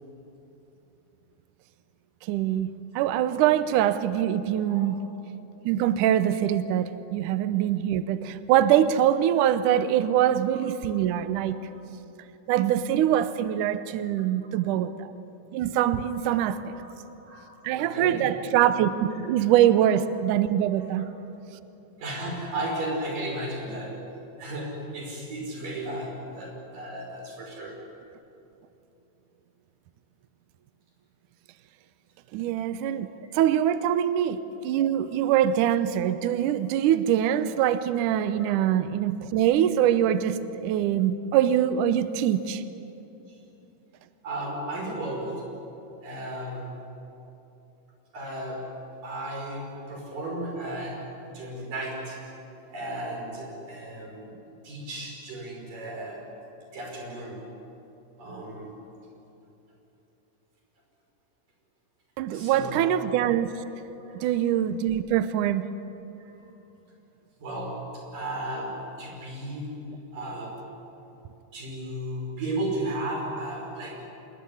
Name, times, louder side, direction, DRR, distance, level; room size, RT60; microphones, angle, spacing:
voice 1, 2.2-2.7 3.0-5.0 5.7-11.6 12.5-15.1 15.5-16.7 17.6-21.1 32.3-34.4 34.6-42.6 62.2-63.5 64.2-65.7, right 11 dB, 80° right, 12 dB, 1.8 m, -23 dB
voice 2, 17.3-18.5 19.6-19.8 20.7-20.9 22.0-24.1 24.4-27.9 35.0-35.1 36.5-36.6 38.4-38.6 43.3-43.4 44.2-45.6 46.0-46.8 48.1-54.3 54.6-56.4 56.7-57.4 58.2-58.7 62.3-63.0 64.0-64.3 66.2-66.5 67.4-69.9 70.1-70.8 71.5-74.0, right 1 dB, 55° right, 0 dB, 6.9 m, -35 dB
26.0 x 21.0 x 9.9 m, 2.9 s
omnidirectional pair, 4.7 m